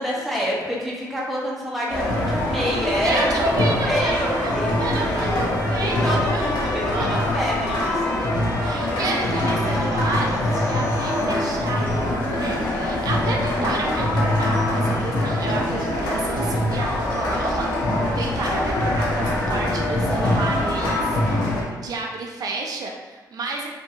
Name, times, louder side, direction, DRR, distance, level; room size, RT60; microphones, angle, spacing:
voice 1, 0.0-4.7 5.2-5.3 5.8-8.2 8.6-9.0, equal, ahead, -5 dB, 0.7 m, -27 dB
sound 1, 1.9-21.6, left 1 dB, 90° left, 0.7 m, -23 dB
voice 2, 2.8-4.5 4.8-7.5 8.2-8.3 8.6-11.9 12.2-23.7, right 3 dB, 60° right, 0 dB, 0.4 m, -30 dB
sound 2, 3.4-11.2, left 1 dB, 20° left, 1.3 m, -36 dB
sound 3, 9.2-15.0, left 1 dB, 50° left, 0.4 m, -37 dB
2.7 x 2.5 x 2.6 m, 1.2 s
cardioid pair, 100°, 7 cm